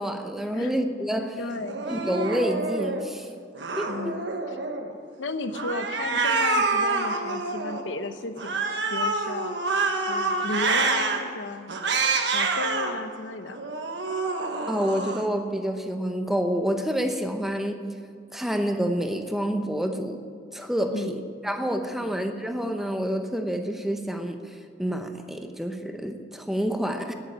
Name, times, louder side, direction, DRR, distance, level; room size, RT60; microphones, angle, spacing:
voice 1, 0.0-1.4 1.9-3.3 3.8-4.1 14.7-17.9 18.3-20.2 20.5-27.1, equal, ahead, 5 dB, 0.8 m, -28 dB
voice 2, 1.4-1.9 3.8-4.3 5.2-9.6 10.1-12.0 12.3-13.7 20.9-21.2 22.0-22.2, left 3 dB, 90° left, 9 dB, 0.9 m, -34 dB
Cat, 1.6-3.1 3.6-4.9 5.5-7.8 8.4-11.2 11.7-12.9 13.5-15.3, right 3 dB, 70° right, 1.3 m, -27 dB
10.5 x 9.1 x 9.9 m, 2.2 s
head